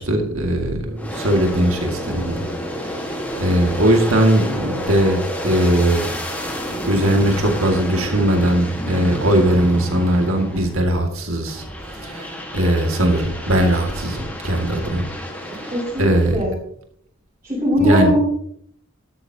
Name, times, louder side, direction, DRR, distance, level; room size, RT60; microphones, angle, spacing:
voice 1, 0.0-2.4 2.8-6.1 6.8-11.6 11.9-15.1 16.0-16.4 17.8-18.1, right 1 dB, 70° right, 3 dB, 2.2 m, -19 dB
Aircraft, 1.0-11.0 11.5-16.4, equal, 5° left, 1.6 m, -30 dB
voice 2, 3.4-3.8 15.7-16.5 17.4-18.2, equal, 25° right, -10 dB, 5.3 m, -20 dB
12.5 x 12.5 x 2.9 m, 0.68 s
head